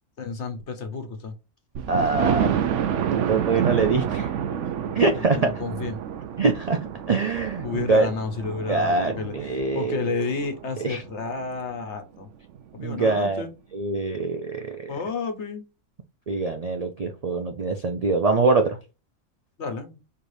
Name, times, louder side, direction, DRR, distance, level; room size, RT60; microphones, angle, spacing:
voice 1, 0.2-1.3 5.1-6.0 7.6-12.3 12.7-13.5 14.9-15.6 19.6-20.0, left 4 dB, 65° left, 1.2 m, -31 dB
Thunder, 1.7-11.5 12.0-12.1 12.5-12.6 12.9-13.0, right 9 dB, 70° right, 0.9 m, -29 dB
voice 2, 1.9-2.8 3.1-4.3 4.9-5.5 6.4-6.8 7.1-8.1 8.7-10.0 10.8-11.0 12.8-13.4 13.7-14.9 16.3-18.8, right 3 dB, 55° right, 0.4 m, -24 dB
4.6 x 3.3 x 2.6 m
omnidirectional pair, 1.3 m